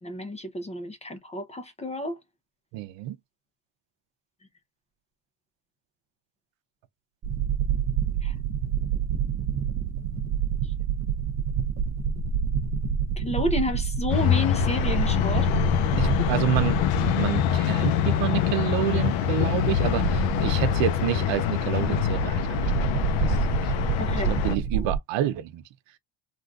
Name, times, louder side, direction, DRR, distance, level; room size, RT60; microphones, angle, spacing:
voice 1, 0.0-2.2 8.2-8.3 13.2-15.5 24.0-24.9, left 1 dB, 15° left, 0.5 m, -31 dB
voice 2, 2.7-3.2 16.0-22.7 23.3-23.4 23.6-25.6, right 13 dB, 75° right, 0.7 m, -29 dB
sound 1, 7.2-17.8 18.1-18.2 19.3-25.0, right 7 dB, 35° right, 0.6 m, -28 dB
sound 2, 14.1-24.6, left 9 dB, 85° left, 0.7 m, -25 dB
3.7 x 2.4 x 2.3 m
cardioid pair, 170°, 45 cm